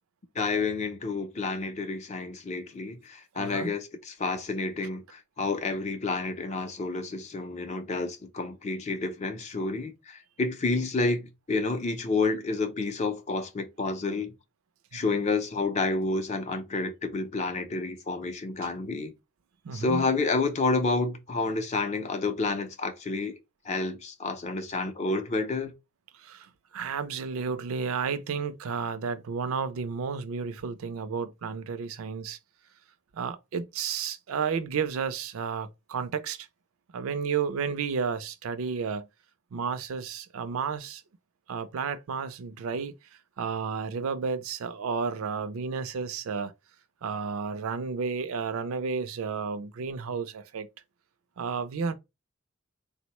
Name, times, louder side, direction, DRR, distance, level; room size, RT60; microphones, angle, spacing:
voice 1, 0.4-14.4 14.9-19.1 19.7-23.4 23.6-25.7, left 3 dB, 30° left, 0.4 m, -29 dB
voice 2, 3.4-3.7 14.9-15.0 19.6-20.0 26.2-26.5 26.7-32.4 33.1-36.5 36.9-39.1 39.5-41.0 41.5-42.9 43.4-46.5 47.0-50.7 51.4-51.9, right 5 dB, 70° right, 0.4 m, -32 dB
3.7 x 2.1 x 2.9 m
head